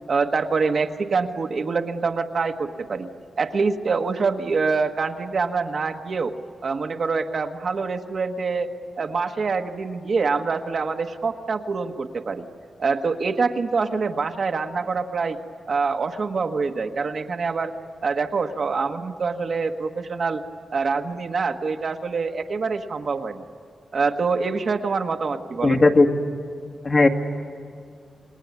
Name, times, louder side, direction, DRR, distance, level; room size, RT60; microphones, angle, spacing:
voice 1, 0.1-3.1 3.4-6.3 6.6-8.7 9.0-12.5 12.8-15.4 15.7-17.7 18.0-20.4 20.7-23.4 23.9-25.9, right 4 dB, 55° right, 5 dB, 1.3 m, -25 dB
voice 2, 25.6-26.1 26.8-27.1, left 3 dB, 40° left, 3 dB, 1.9 m, -16 dB
28.0 x 20.5 x 9.5 m, 2.2 s
wide cardioid pair, 95°, 0 cm